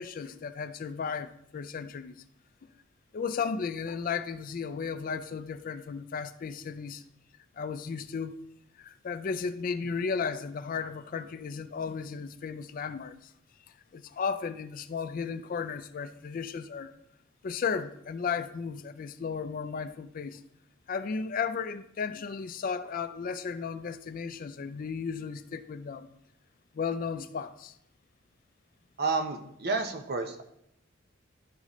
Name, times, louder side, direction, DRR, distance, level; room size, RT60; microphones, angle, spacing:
voice 1, 0.0-2.2 3.1-7.0 7.6-8.4 8.8-13.3 13.9-16.9 17.4-20.4 20.9-26.1 26.7-27.7, left 5 dB, 45° left, 0.3 m, -34 dB
voice 2, 29.0-30.4, right 3 dB, 55° right, 0.8 m, -30 dB
11.5 x 4.0 x 3.0 m
head